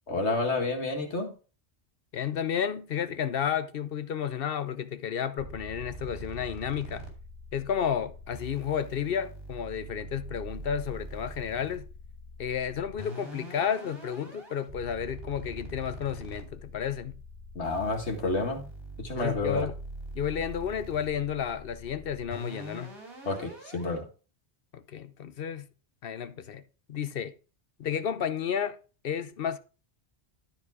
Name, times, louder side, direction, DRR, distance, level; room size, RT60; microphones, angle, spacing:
voice 1, 0.1-1.3 17.6-18.7 19.0-19.7 23.3-24.1, left 3 dB, 75° left, 2.2 m, -30 dB
voice 2, 2.1-7.1 7.5-11.9 12.4-17.2 19.2-19.7 20.1-22.9 24.7-25.7 26.0-26.6 26.9-27.3 27.8-28.8 29.0-29.6, left 8 dB, 60° left, 0.9 m, -32 dB
sound 1, 5.4-24.0, right 1 dB, 60° right, 3.0 m, -43 dB
12.5 x 4.7 x 4.8 m
omnidirectional pair, 1.1 m